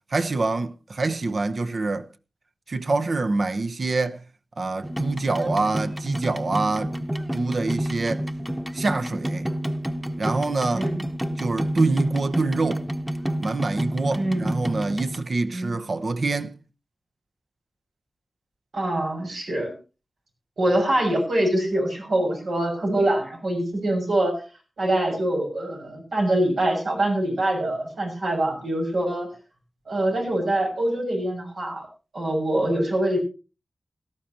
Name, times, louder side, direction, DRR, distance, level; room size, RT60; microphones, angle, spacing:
voice 1, 0.1-2.1 2.7-4.2 4.6-6.9 7.3-8.2 8.7-9.5 10.2-10.9 11.4-12.9 13.4-16.6, right 3 dB, 60° right, 0.9 m, -25 dB
sound 1, 4.8-15.2, equal, 5° right, 1.0 m, -29 dB
voice 2, 10.7-11.0 14.1-14.5 15.5-15.7 18.7-19.7 20.6-24.4 24.8-29.3 29.9-31.9 32.1-33.2, right 1 dB, 85° right, 6.4 m, -24 dB
18.0 x 13.0 x 2.9 m
wide cardioid pair, 75°, 0 cm